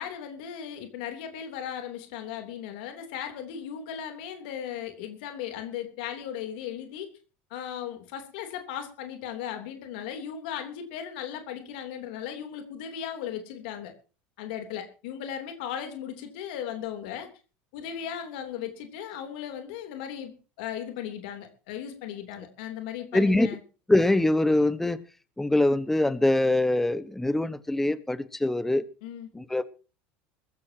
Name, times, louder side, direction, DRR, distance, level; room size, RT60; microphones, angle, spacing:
voice 1, 0.0-7.1 7.5-13.9 14.4-17.3 17.7-20.3 20.6-23.6 29.0-29.3, left 9 dB, 80° left, 6 dB, 3.2 m, -37 dB
voice 2, 23.1-23.5 23.9-25.0 25.4-28.8 29.3-29.7, left 2 dB, 5° left, 15 dB, 1.2 m, -23 dB
21.0 x 15.0 x 2.9 m, 0.35 s
supercardioid pair, 120°, 5 cm